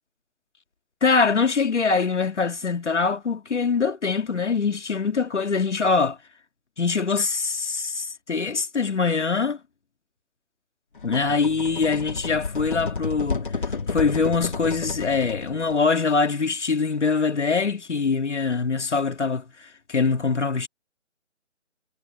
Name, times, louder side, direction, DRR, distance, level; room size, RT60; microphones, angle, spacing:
voice 1, 1.0-6.2 6.8-9.6 11.0-19.4 19.9-20.7, left 4 dB, 70° left, 2.3 m, -23 dB
sound 1, 11.0-15.8, left 4 dB, 45° left, 2.3 m, -31 dB
hypercardioid pair, 180°, 37 cm